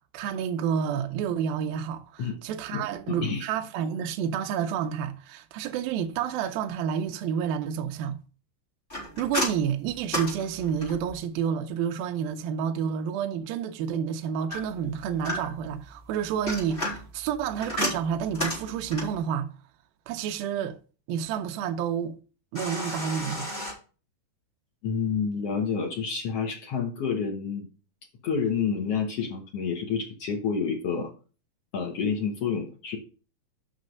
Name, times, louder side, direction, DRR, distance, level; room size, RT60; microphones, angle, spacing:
voice 1, 0.1-8.2 9.2-19.5 20.1-20.8 21.1-22.2 22.5-23.5, right 8 dB, 80° right, 2.5 m, -29 dB
voice 2, 2.7-3.4 24.8-27.7 28.2-31.1 31.7-33.0, left 6 dB, 65° left, 1.6 m, -29 dB
sound 1, 8.9-11.2 14.5-15.7 16.3-19.2 22.5-23.7, left 1 dB, 15° left, 4.3 m, -32 dB
6.5 x 5.8 x 6.3 m
omnidirectional pair, 4.4 m